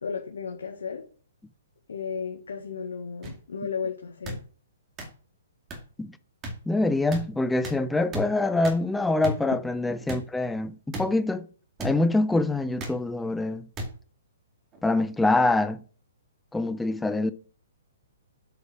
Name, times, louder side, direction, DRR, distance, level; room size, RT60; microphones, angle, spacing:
voice 1, 0.0-1.1 1.9-4.4, left 6 dB, 85° left, 1.8 m, -34 dB
sound 1, 3.2-3.3 4.2-4.4 5.0-5.1 5.7-5.8 6.4-6.5 7.1-7.2 7.6-7.8 8.1-8.2 8.6-8.8 9.2-9.4 10.1-10.2 10.9-11.0 11.8-11.9 12.8-13.0 13.8-13.9 14.7-14.9, right 1 dB, 20° right, 2.4 m, -33 dB
voice 2, 6.7-11.5 11.8-13.7 14.8-15.8 16.5-17.3, left 2 dB, 5° left, 0.6 m, -25 dB
8.0 x 5.3 x 6.4 m
hypercardioid pair, 145°, 0 cm